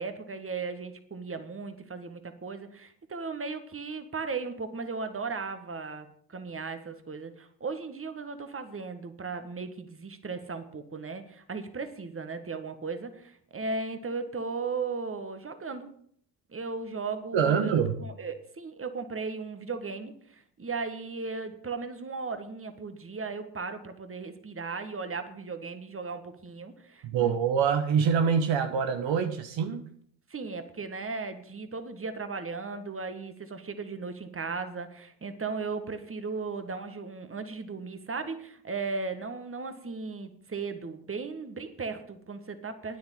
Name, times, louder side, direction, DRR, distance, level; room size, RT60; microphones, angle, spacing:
voice 1, 0.0-15.9 16.5-17.7 18.0-27.4 30.3-43.0, right 4 dB, 25° right, 9 dB, 1.8 m, -36 dB
voice 2, 17.3-18.0 27.0-29.8, right 7 dB, 65° right, 7 dB, 1.3 m, -25 dB
9.7 x 8.1 x 8.6 m, 0.62 s
hypercardioid pair, 55°, 49 cm